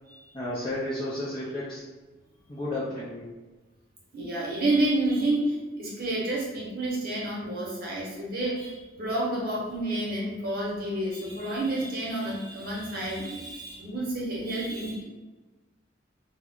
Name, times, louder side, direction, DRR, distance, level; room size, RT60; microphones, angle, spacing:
voice 1, 0.3-1.8 2.5-3.3, left 1 dB, 25° left, -8 dB, 0.5 m, -32 dB
voice 2, 4.1-15.0, right 1 dB, 50° right, -4 dB, 0.8 m, -29 dB
2.3 x 2.0 x 3.6 m, 1.2 s
head